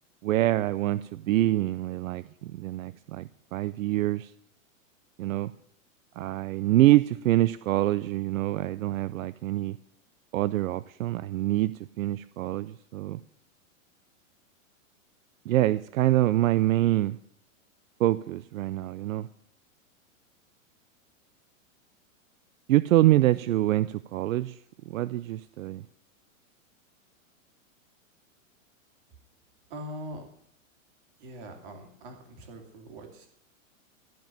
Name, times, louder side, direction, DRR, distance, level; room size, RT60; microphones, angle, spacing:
voice 1, 0.2-4.3 5.2-5.5 6.2-9.8 10.3-11.7 12.0-13.2 15.5-17.2 18.0-19.3 22.7-24.6 24.9-25.8, right 15 dB, 80° right, 0.6 m, -25 dB
voice 2, 29.7-30.3 31.2-33.3, equal, 40° right, 2.8 m, -42 dB
14.0 x 5.2 x 8.9 m
supercardioid pair, 170°, 40 cm